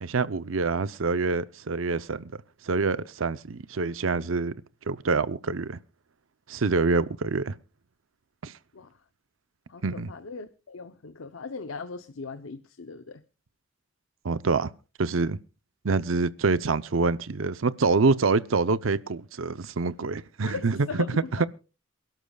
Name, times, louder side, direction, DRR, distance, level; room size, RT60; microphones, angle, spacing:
voice 1, 0.0-2.3 2.6-4.5 4.9-5.8 6.5-7.5 8.4-8.5 9.8-10.1 14.2-14.7 15.0-15.4 15.8-21.5, right 4 dB, 75° right, 0.7 m, -26 dB
voice 2, 9.7-13.2 20.4-21.3, left 4 dB, 85° left, 0.7 m, -39 dB
28.0 x 12.0 x 2.3 m
head